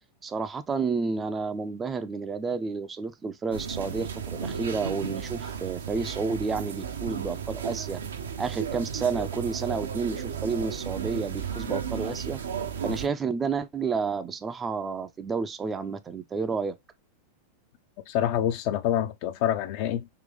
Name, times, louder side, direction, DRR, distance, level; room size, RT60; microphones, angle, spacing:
voice 1, 0.2-8.0 8.4-12.4 12.8-16.8, right 4 dB, 20° right, 0.4 m, -30 dB
sound 1, 3.5-13.1, right 7 dB, 65° right, 0.6 m, -34 dB
voice 2, 18.1-20.1, left 11 dB, 45° left, 0.5 m, -26 dB
3.8 x 2.8 x 3.5 m
figure-of-eight pair, 90°, 0 cm